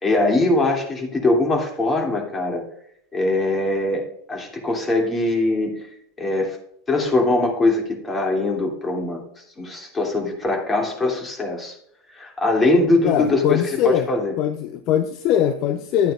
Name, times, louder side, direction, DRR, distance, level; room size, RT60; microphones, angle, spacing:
voice 1, 0.0-2.6 3.1-5.9 6.2-6.6 6.9-9.2 9.6-11.7 12.1-14.3, left 2 dB, 20° left, 1 dB, 2.9 m, -22 dB
voice 2, 13.0-14.1 14.4-16.1, left 10 dB, 45° left, 9 dB, 0.5 m, -21 dB
12.5 x 8.9 x 2.5 m, 0.69 s
figure-of-eight pair, 80°, 0 cm